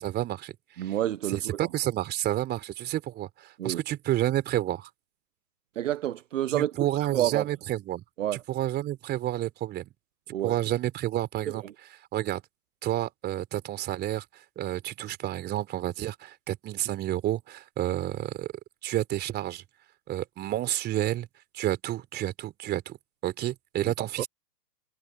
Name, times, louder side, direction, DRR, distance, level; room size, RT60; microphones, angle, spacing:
voice 1, 0.0-0.9 1.3-4.9 6.5-8.0 8.5-9.9 10.4-11.6 12.1-12.4 12.8-14.2 14.6-18.5 18.8-19.6 20.1-21.3 21.5-23.0 23.2-24.3, right 13 dB, 20° right, 3.8 m, -30 dB
voice 2, 0.8-1.6 3.6-3.8 5.8-6.7 7.0-7.5 8.2-8.4 10.3-10.6 11.5-11.7 23.8-23.9 24.2-24.3, right 12 dB, 50° right, 1.0 m, -29 dB
figure-of-eight pair, 125°, 48 cm